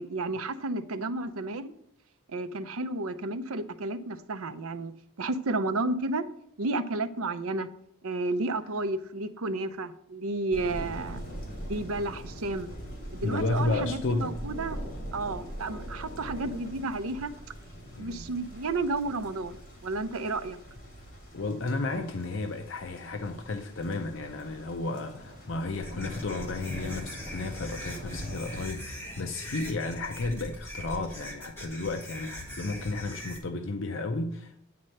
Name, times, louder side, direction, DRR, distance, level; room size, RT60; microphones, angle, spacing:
voice 1, 0.0-1.7 2.3-4.9 5.2-6.3 6.6-7.7 8.0-11.2 11.7-12.7 13.1-14.8 15.1-17.3 18.0-20.6, right 2 dB, 80° right, 0.6 m, -32 dB
sound 1, 10.5-28.7, equal, 40° left, 3.1 m, -42 dB
voice 2, 13.2-14.4 18.0-18.3 21.3-34.6, left 3 dB, 60° left, 0.6 m, -33 dB
sound 2, 25.7-33.4, equal, 10° left, 1.6 m, -41 dB
9.4 x 4.3 x 6.5 m
head